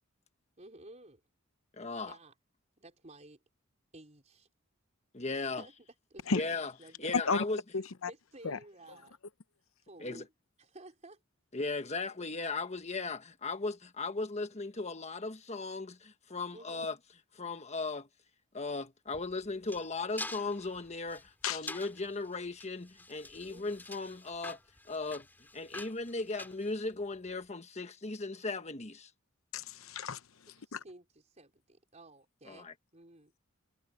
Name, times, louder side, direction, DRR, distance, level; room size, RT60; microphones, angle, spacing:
voice 1, 0.6-1.2 2.0-2.3 2.8-3.4 3.9-4.5 5.3-5.7 6.1-6.5 6.8-7.1 8.0-9.2 9.8-10.3 10.6-11.2 16.5-16.8 23.5-23.6 30.5-33.3, right 1 dB, 35° right, 4.7 m, -53 dB
voice 2, 1.8-2.1 5.1-5.6 6.3-6.7 7.0-7.6 10.0-10.2 11.5-17.0 17.3-18.1 18.5-24.6 24.9-25.3 25.5-29.1 32.5-32.7, left 3 dB, 30° left, 1.3 m, -37 dB
voice 3, 7.7-8.1 8.4-8.6 21.4-21.7 29.5-30.2 30.7-30.8, left 4 dB, 75° left, 0.8 m, -33 dB
sound 1, 19.1-27.3, left 2 dB, 10° left, 3.2 m, -47 dB
head